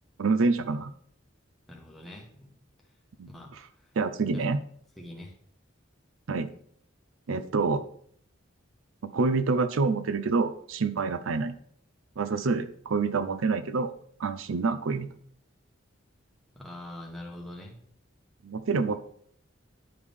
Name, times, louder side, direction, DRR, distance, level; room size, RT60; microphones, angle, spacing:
voice 1, 0.2-0.9 3.2-3.3 4.0-4.6 6.3-6.5 7.3-7.8 9.0-11.5 12.2-13.9 14.2-15.1 18.4-19.0, right 4 dB, 80° right, 11 dB, 0.5 m, -27 dB
voice 2, 1.7-2.5 3.3-3.5 3.8-3.9 4.3-4.5 5.0-5.3 16.5-17.8, left 1 dB, ahead, -2 dB, 1.3 m, -43 dB
10.0 x 4.8 x 3.6 m, 0.62 s
head